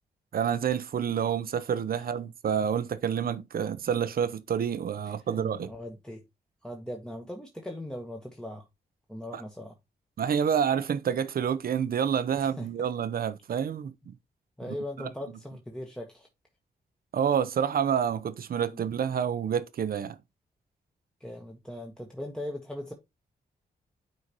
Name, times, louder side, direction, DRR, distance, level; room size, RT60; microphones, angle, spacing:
voice 1, 0.3-5.7 9.3-9.4 10.2-14.1 14.7-15.1 17.1-20.2, right 8 dB, 65° right, 0.7 m, -28 dB
voice 2, 5.0-6.2 6.6-8.6 9.1-9.7 12.6-12.7 14.6-16.3 18.7-18.9 21.2-22.9, left 1 dB, 5° left, 1.3 m, -39 dB
9.7 x 4.0 x 3.0 m
cardioid pair, 70°, 16 cm